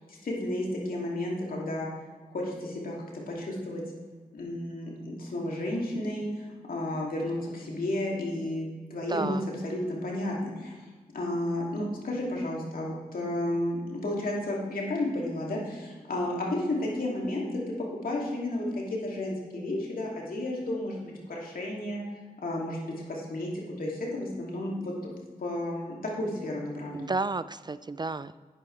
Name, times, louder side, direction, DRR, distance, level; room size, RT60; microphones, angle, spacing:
voice 1, 0.1-1.9 2.3-3.0 3.3-3.8 4.3-9.4 9.6-10.7 11.1-17.6 18.0-22.0 22.4-23.5 23.8-25.1 25.4-27.1, left 1 dB, 70° left, -3 dB, 2.7 m, -32 dB
voice 2, 9.1-9.4 26.9-28.4, right 3 dB, 30° right, 15 dB, 0.4 m, -31 dB
10.5 x 10.0 x 3.3 m, 1.4 s
cardioid pair, 45°, 15 cm